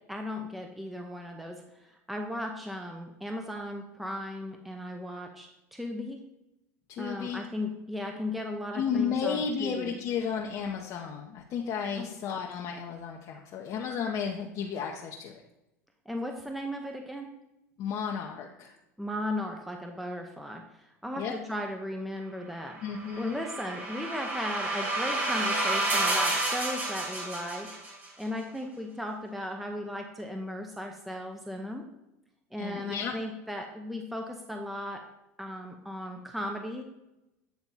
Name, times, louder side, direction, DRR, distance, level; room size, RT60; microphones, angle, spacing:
voice 1, 0.1-6.2 7.0-10.0 12.0-12.1 16.1-17.3 19.0-22.8 23.2-27.7 28.2-31.9 32.5-35.0 35.4-36.8, left 1 dB, ahead, 3 dB, 0.6 m, -36 dB
voice 2, 6.9-7.4 8.7-15.4 17.8-18.7 21.2-21.3 22.8-23.4 32.6-33.1, left 7 dB, 50° left, 0 dB, 0.7 m, -33 dB
sound 1, 22.8-28.1, right 2 dB, 25° right, 1.7 m, -30 dB
8.3 x 3.4 x 4.1 m, 0.91 s
hypercardioid pair, 95°, 8 cm